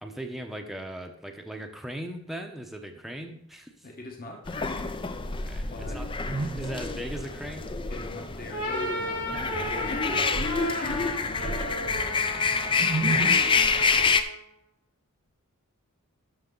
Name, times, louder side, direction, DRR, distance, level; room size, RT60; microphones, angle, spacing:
voice 1, 0.0-3.9 5.4-6.1 6.4-8.1 9.9-10.0 10.9-11.2, right 1 dB, ahead, 3 dB, 0.8 m, -39 dB
voice 2, 3.8-5.0 5.7-6.0 7.9-10.3, left 2 dB, 40° left, 1 dB, 1.3 m, -43 dB
sound 1, 4.5-14.2, left 5 dB, 20° left, 0.5 m, -27 dB
sound 2, 5.3-7.7 8.0-8.1 9.3-12.3 12.6-13.4, right 2 dB, 40° right, 0.5 m, -34 dB
sound 3, 8.4-14.4, equal, 70° left, 3.4 m, -34 dB
11.5 x 6.5 x 3.9 m, 0.71 s
head